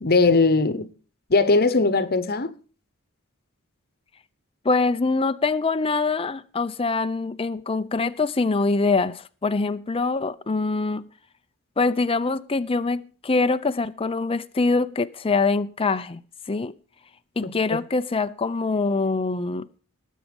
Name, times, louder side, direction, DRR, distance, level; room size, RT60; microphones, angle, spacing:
voice 1, 0.0-0.9 1.3-2.5 17.4-17.8, left 3 dB, 45° left, 1.1 m, -20 dB
voice 2, 4.6-11.0 11.8-16.2 16.5-16.7 17.4-19.7, left 3 dB, 25° left, 0.6 m, -24 dB
19.0 x 8.4 x 5.3 m
head